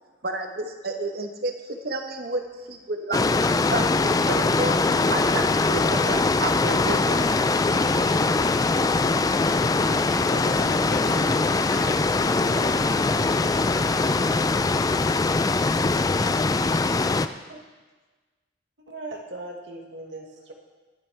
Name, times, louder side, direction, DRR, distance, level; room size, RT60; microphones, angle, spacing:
voice 1, 0.2-2.4 2.7-3.2 3.7-3.8 4.3-4.8 5.1-7.2, right 2 dB, 55° right, 5 dB, 1.2 m, -30 dB
sound 1, 3.1-17.3, left 3 dB, 20° left, 0.3 m, -22 dB
voice 2, 10.2-11.9, left 2 dB, 75° left, 0 dB, 1.9 m, -39 dB
voice 3, 18.9-20.5, right 2 dB, 85° right, 1 dB, 1.7 m, -38 dB
21.5 x 7.6 x 3.4 m, 1.3 s
head